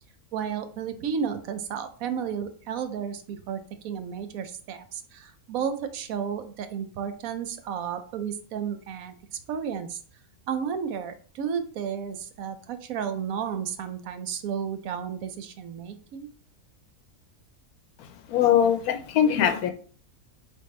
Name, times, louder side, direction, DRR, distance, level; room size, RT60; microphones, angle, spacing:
voice 1, 0.3-9.1 9.5-10.0 10.5-16.3, right 7 dB, 75° right, 9 dB, 1.0 m, -32 dB
voice 2, 18.0-19.7, left 9 dB, 90° left, 7 dB, 1.2 m, -22 dB
4.7 x 3.5 x 3.1 m, 0.41 s
omnidirectional pair, 1.6 m